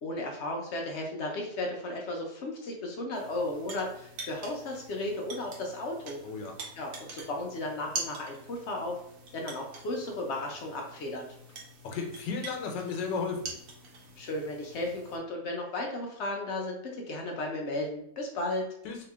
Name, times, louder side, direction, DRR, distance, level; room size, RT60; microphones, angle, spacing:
voice 1, 0.0-6.2 6.7-9.0 9.3-11.2 14.2-18.6, left 2 dB, 70° left, 0 dB, 0.6 m, -34 dB
sound 1, 3.1-15.2, right 3 dB, 70° right, 1.2 m, -45 dB
voice 2, 6.2-6.6 11.8-13.4 18.8-19.0, left 5 dB, 90° left, 3 dB, 1.3 m, -34 dB
2.9 x 2.8 x 3.4 m, 0.74 s
omnidirectional pair, 1.9 m